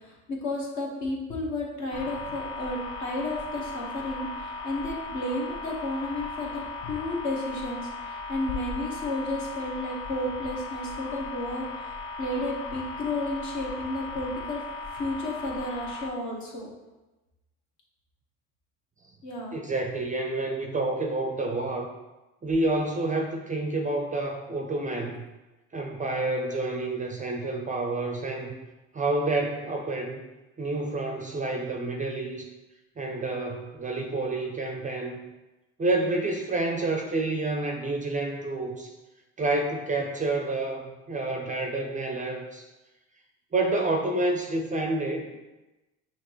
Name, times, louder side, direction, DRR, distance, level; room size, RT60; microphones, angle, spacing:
voice 1, 0.0-14.6 14.9-16.7 19.2-19.6, left 1 dB, 55° left, -2 dB, 1.4 m, -32 dB
sound 1, 1.9-16.1, left 3 dB, 75° left, 0.6 m, -37 dB
voice 2, 19.5-21.9 22.4-25.2 25.7-28.6 28.9-30.2 30.6-32.5 33.0-35.2 35.8-38.9 39.4-42.6 43.5-45.4, right 2 dB, 20° right, 2 dB, 0.5 m, -29 dB
5.7 x 2.9 x 3.1 m, 1.1 s
supercardioid pair, 90°, 36 cm